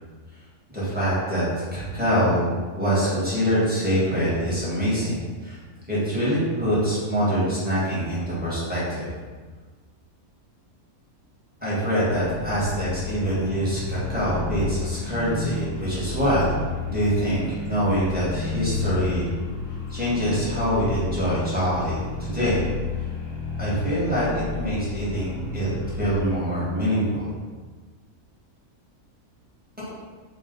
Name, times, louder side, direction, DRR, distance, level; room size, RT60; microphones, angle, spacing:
voice 1, 0.7-1.4 1.7-5.6 5.9-9.1 11.6-19.3 19.9-22.6 23.6-27.3, equal, 5° right, -10 dB, 1.2 m, -24 dB
sound 1, 11.6-26.4, left 4 dB, 85° right, 1.6 m, -32 dB
3.2 x 2.8 x 3.7 m, 1.4 s
omnidirectional pair, 1.6 m